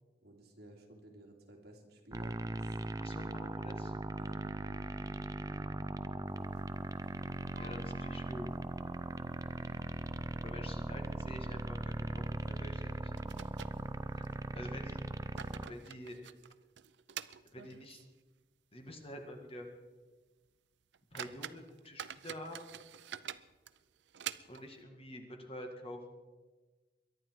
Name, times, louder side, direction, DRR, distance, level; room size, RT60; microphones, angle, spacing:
voice 1, 0.2-2.8 4.1-4.4 15.3-15.6, right 1 dB, 65° right, 1 dB, 2.8 m, -55 dB
sound 1, 2.1-15.7, right 2 dB, 20° right, 0.5 m, -39 dB
voice 2, 3.0-3.9 7.6-8.5 10.3-13.1 14.2-15.0 15.7-16.2 17.5-18.0 18.7-19.7 21.1-22.6 24.5-26.0, left 1 dB, 35° left, 4 dB, 1.9 m, -47 dB
sound 2, 6.4-7.4 7.7-7.8 8.2-8.3 8.9-9.4 9.7-9.8 10.4-10.6 10.9-11.1 12.4-12.5 13.2-14.4 15.0-18.2 18.6-18.7 19.2-19.3 19.8-19.9 20.5-20.6 20.9-24.8, right 9 dB, 80° right, 0.6 m, -47 dB
Piano, 7.6-9.6, left 1 dB, 45° right, 2.0 m, -59 dB
23.0 x 10.5 x 4.6 m, 1.3 s
head